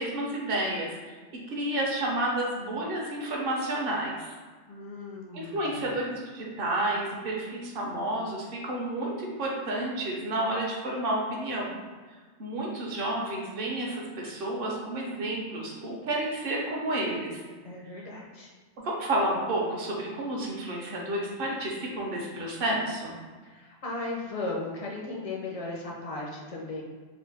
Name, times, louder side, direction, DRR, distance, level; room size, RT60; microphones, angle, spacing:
voice 1, 0.0-4.3 5.3-11.7 12.4-17.4 18.8-23.2, right 1 dB, 55° right, -2 dB, 0.8 m, -31 dB
voice 2, 4.7-5.9 17.6-18.5 23.4-26.8, left 2 dB, 50° left, -2 dB, 0.4 m, -36 dB
3.1 x 2.5 x 3.3 m, 1.5 s
omnidirectional pair, 1.2 m